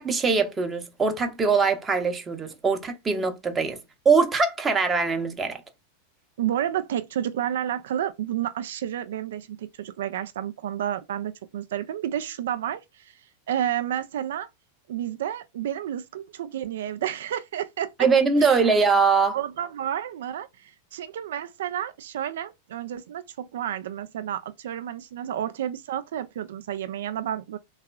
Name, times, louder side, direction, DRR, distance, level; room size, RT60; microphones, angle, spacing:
voice 1, 0.0-3.8 4.0-5.6 18.0-19.4, right 4 dB, 15° right, 0.7 m, -22 dB
voice 2, 6.4-13.2 13.5-14.5 14.9-17.9 18.4-18.6 19.3-27.6, right 10 dB, 60° right, 0.3 m, -31 dB
3.6 x 2.3 x 2.2 m
figure-of-eight pair, 90°, 0 cm